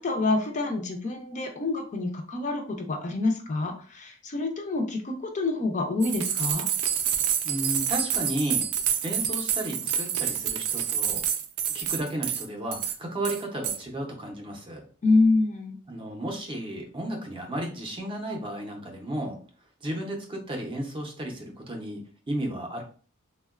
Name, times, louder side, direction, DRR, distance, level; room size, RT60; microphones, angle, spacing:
voice 1, 0.0-6.7 15.0-15.8, left 3 dB, 35° left, 3 dB, 0.4 m, -26 dB
sound 1, 6.0-12.5 12.7-12.9 13.2-13.8, right 8 dB, 80° right, 0.4 m, -28 dB
voice 2, 7.4-8.7 9.0-11.3 11.7-14.9 15.9-19.4 19.8-22.8, right 1 dB, 25° right, 2 dB, 0.5 m, -33 dB
3.6 x 2.1 x 2.3 m, 0.41 s
head